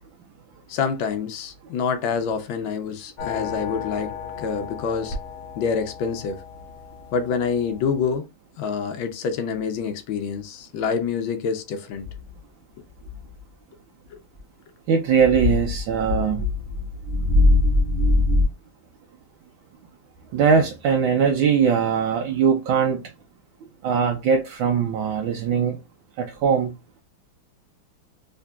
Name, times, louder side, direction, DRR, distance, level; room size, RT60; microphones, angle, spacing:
voice 1, 0.7-5.2 5.5-6.4 7.1-8.3 8.6-12.1 14.1-14.2, left 6 dB, 80° left, 1.4 m, -27 dB
sound 1, 3.2-8.2, left 6 dB, 50° left, 0.9 m, -36 dB
sound 2, 12.0-12.3 13.0-13.4 14.4-14.5 15.1-18.4, left 2 dB, 10° left, 0.6 m, -21 dB
voice 2, 14.9-16.4 20.3-23.0 23.8-25.8 26.2-26.7, right 6 dB, 85° right, 1.4 m, -21 dB
3.7 x 3.2 x 2.3 m
omnidirectional pair, 2.2 m